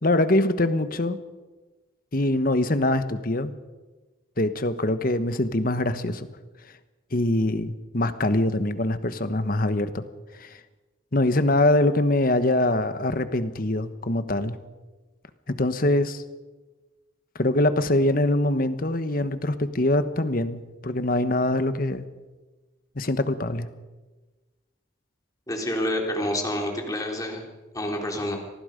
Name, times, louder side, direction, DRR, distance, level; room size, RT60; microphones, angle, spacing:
voice 1, 0.0-1.2 2.1-3.5 4.4-6.3 7.1-10.0 10.4-10.5 11.1-14.6 15.5-16.2 17.4-22.1 22.9-23.7, left 1 dB, 45° left, 11 dB, 1.3 m, -23 dB
voice 2, 25.5-27.4 27.7-28.4, left 1 dB, 20° left, 1 dB, 3.4 m, -28 dB
26.0 x 19.0 x 5.2 m, 1.2 s
head